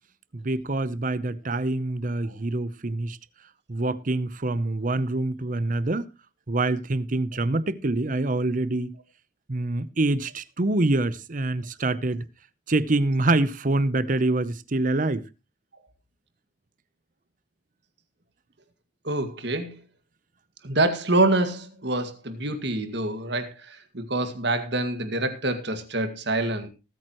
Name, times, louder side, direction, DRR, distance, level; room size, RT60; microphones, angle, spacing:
voice 1, 0.3-3.2 3.7-6.1 6.5-9.0 9.5-12.2 12.7-15.3, right 2 dB, 40° right, 0.7 m, -25 dB
voice 2, 19.0-19.8 20.6-26.7, right 2 dB, 55° right, 2.0 m, -26 dB
20.0 x 9.0 x 3.0 m
head